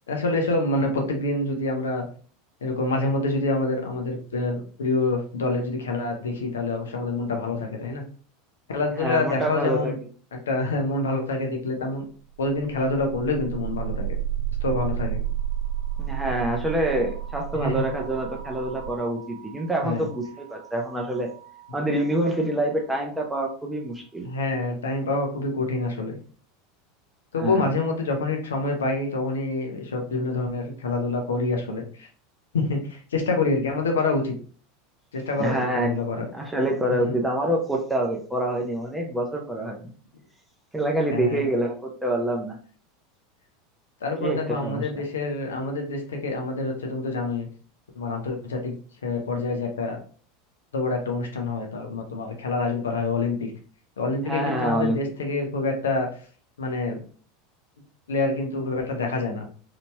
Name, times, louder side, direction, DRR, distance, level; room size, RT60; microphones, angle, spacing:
voice 1, 0.1-2.0 2.6-8.0 8.7-10.0 10.5-12.0 12.4-14.1 14.6-15.2 17.6-17.8 19.8-20.1 24.2-26.2 27.3-32.1 32.5-34.3 35.1-36.3 36.9-37.1 41.1-41.5 44.0-47.5 48.0-48.7 49.0-50.0 50.7-53.5 54.0-56.1 56.6-57.0 58.1-59.5, left 3 dB, 70° left, 2 dB, 0.8 m, -26 dB
voice 2, 9.0-9.9 16.0-21.3 21.7-24.3 27.4-27.7 35.4-35.9 36.2-39.9 40.7-42.6 44.2-44.9 54.2-55.0, right 1 dB, 5° right, 0 dB, 0.7 m, -26 dB
sound 1, 12.3-22.3, right 10 dB, 55° right, 0.4 m, -32 dB
4.0 x 2.9 x 2.2 m, 0.42 s
figure-of-eight pair, 80°, 0 cm